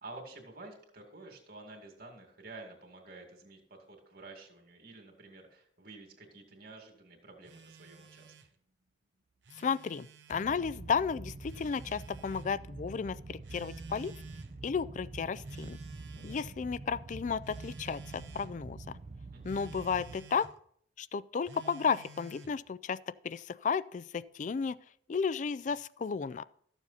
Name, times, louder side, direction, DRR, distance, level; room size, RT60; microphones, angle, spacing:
voice 1, 0.0-8.3 16.1-16.4 19.3-19.5, right 2 dB, 55° right, 3 dB, 2.3 m, -50 dB
Telephone, 7.4-8.5 9.3-10.5 11.4-12.5 13.4-14.5 15.4-16.6 17.4-18.5 19.4-20.5 21.4-22.6, right 4 dB, 80° right, 0.9 m, -51 dB
voice 2, 9.6-14.1 14.6-15.8 16.2-18.8 19.4-20.5 21.0-24.8 25.1-26.4, left 6 dB, 45° left, 18 dB, 0.3 m, -33 dB
sound 1, 10.3-20.2, right 3 dB, 40° right, 0.5 m, -46 dB
13.5 x 7.1 x 4.2 m, 0.63 s
head